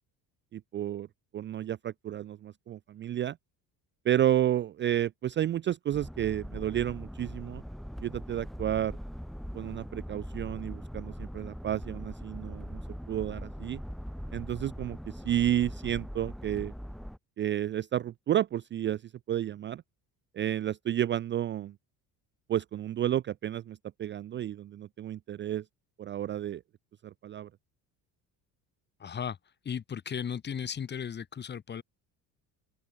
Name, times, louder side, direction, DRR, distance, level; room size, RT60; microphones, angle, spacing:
voice 1, 0.5-1.1 1.3-3.4 4.0-7.6 8.0-8.9 9.5-12.8 13.1-13.8 14.3-16.7 17.4-19.0 19.3-19.8 20.3-21.7 22.5-25.6 26.0-26.6 27.0-27.5, right 11 dB, 30° right, 0.5 m, -31 dB
sound 1, 5.9-17.2, equal, ahead, 5.7 m, -41 dB
voice 2, 29.0-29.4 29.7-31.8, left 7 dB, 25° left, 2.0 m, -35 dB
cardioid pair, 160°, 39 cm